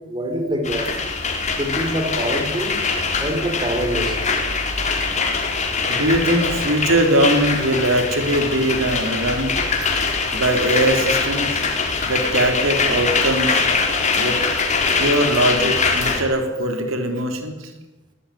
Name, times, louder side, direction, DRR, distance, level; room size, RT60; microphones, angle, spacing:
voice 1, 0.1-0.9 1.6-2.8 3.2-4.2, equal, 20° right, 4 dB, 4.6 m, -24 dB
sound 1, 0.6-16.2, left 4 dB, 35° left, 4.5 m, -22 dB
voice 2, 3.0-3.3 4.1-4.2 5.9-9.6 10.3-11.6 12.0-13.7 14.1-14.5 15.0-17.7, right 1 dB, 80° right, 6 dB, 3.5 m, -21 dB
22.0 x 18.0 x 10.0 m, 1.0 s
head